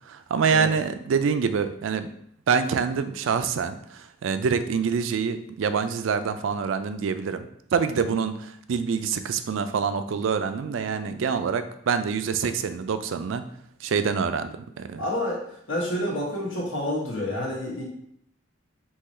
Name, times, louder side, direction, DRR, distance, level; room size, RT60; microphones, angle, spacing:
voice 1, 0.1-2.1 2.5-13.4 13.8-15.0, right 6 dB, 80° right, 10 dB, 0.4 m, -26 dB
voice 2, 15.0-15.4 15.7-17.8, left 1 dB, 80° left, -4 dB, 1.3 m, -28 dB
3.8 x 2.9 x 4.2 m, 0.70 s
head